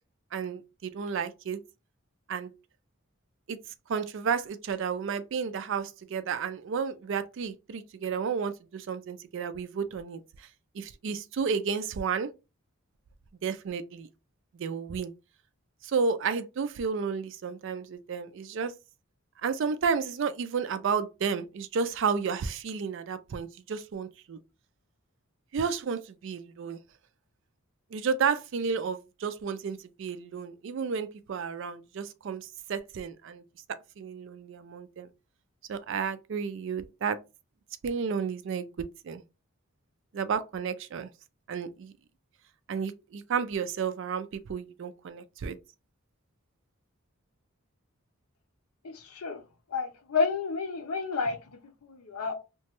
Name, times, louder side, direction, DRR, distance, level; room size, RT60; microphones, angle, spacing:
voice 1, 0.3-1.6 2.3-2.5 3.5-3.6 3.9-10.5 10.7-12.3 13.4-14.1 14.5-15.1 15.8-18.7 19.4-24.4 25.5-26.8 27.9-33.4 34.0-35.1 35.7-37.2 37.8-39.2 40.1-41.1 41.5-41.9 42.7-45.6, right 6 dB, 55° right, 0.3 m, -32 dB
voice 2, 48.8-49.4 49.7-52.3, left 4 dB, 85° left, 0.6 m, -31 dB
3.0 x 2.2 x 2.9 m
head